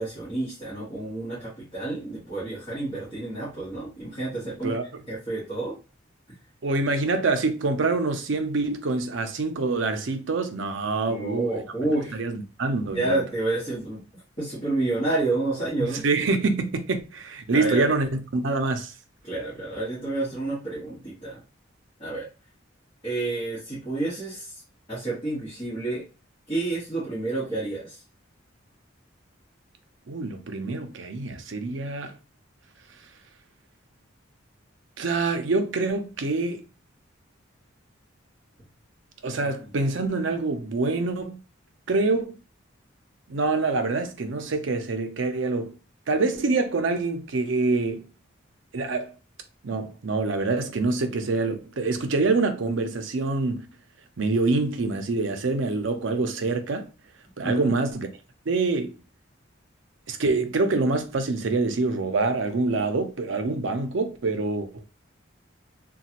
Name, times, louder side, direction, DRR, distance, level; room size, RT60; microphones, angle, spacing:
voice 1, 0.0-4.8 5.1-5.8 11.1-12.2 12.9-14.0 14.4-16.1 17.5-17.9 19.2-21.4 22.0-22.3 23.0-24.6 24.9-26.0 26.5-28.0 39.4-39.5 57.4-57.8, right 2 dB, 25° left, 1.3 m, -29 dB
voice 2, 6.6-11.5 12.1-13.2 16.0-18.9 30.1-32.1 35.0-36.7 39.2-41.4 41.9-42.4 43.3-45.7 46.1-48.1 48.7-49.1 49.6-53.7 54.2-56.8 57.4-58.1 58.5-58.9 60.1-64.8, right 3 dB, 70° right, 0.5 m, -25 dB
3.2 x 2.3 x 2.9 m
head